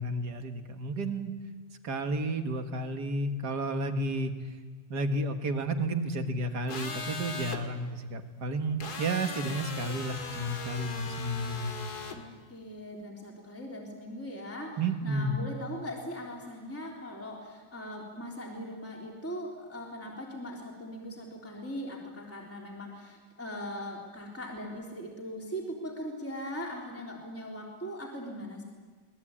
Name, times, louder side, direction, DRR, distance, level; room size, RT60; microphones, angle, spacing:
voice 1, 0.0-1.3 1.8-4.3 4.9-11.9 14.8-15.4, right 1 dB, 60° right, 6 dB, 2.1 m, -32 dB
sound 1, 6.7-7.6 8.8-12.2, left 4 dB, 60° left, 2.4 m, -39 dB
voice 2, 12.1-28.6, equal, 5° left, -2 dB, 3.4 m, -40 dB
24.0 x 20.0 x 8.6 m, 1.5 s
omnidirectional pair, 2.0 m